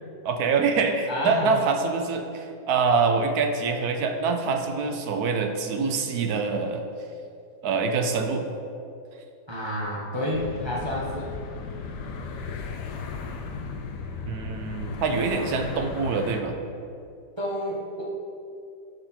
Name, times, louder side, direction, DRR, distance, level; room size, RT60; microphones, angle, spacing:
voice 1, 0.2-6.8 7.6-8.5 14.3-16.6, right 4 dB, 70° right, 5 dB, 1.1 m, -25 dB
voice 2, 1.1-1.6 9.5-11.3 17.4-18.0, left 1 dB, 20° right, -6 dB, 0.9 m, -29 dB
sound 1, 10.3-16.4, left 4 dB, 80° left, 1.3 m, -35 dB
11.5 x 4.4 x 4.2 m, 2.5 s
omnidirectional pair, 1.8 m